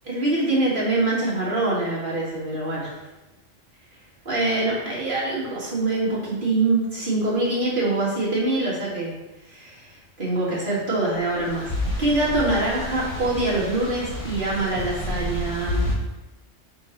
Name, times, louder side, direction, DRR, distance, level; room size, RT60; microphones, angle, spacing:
voice 1, 0.0-2.9 4.3-9.1 9.5-11.7 12.0-15.9, right 2 dB, 40° right, -7 dB, 2.2 m, -24 dB
sound 1, 11.2-15.9, left 1 dB, 20° left, 1.4 m, -30 dB
6.9 x 4.0 x 4.5 m, 1.0 s
omnidirectional pair, 1.3 m